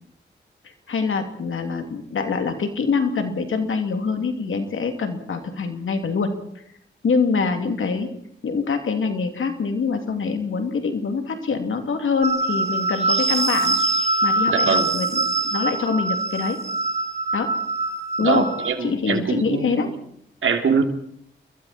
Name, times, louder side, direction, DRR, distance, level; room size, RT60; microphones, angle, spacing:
voice 1, 0.9-6.6 7.0-8.1 8.4-13.8 14.2-15.1 15.4-16.6 17.3-17.5 18.2-18.5 18.8-19.9, left 5 dB, 90° left, 5 dB, 2.9 m, -24 dB
sound 1, 12.2-18.7, right 2 dB, 35° right, 3.1 m, -23 dB
voice 2, 14.5-14.9 18.2-19.9 20.4-20.8, right 5 dB, 85° right, 5 dB, 2.8 m, -23 dB
29.5 x 22.5 x 4.4 m, 0.70 s
cardioid pair, 50°, 20 cm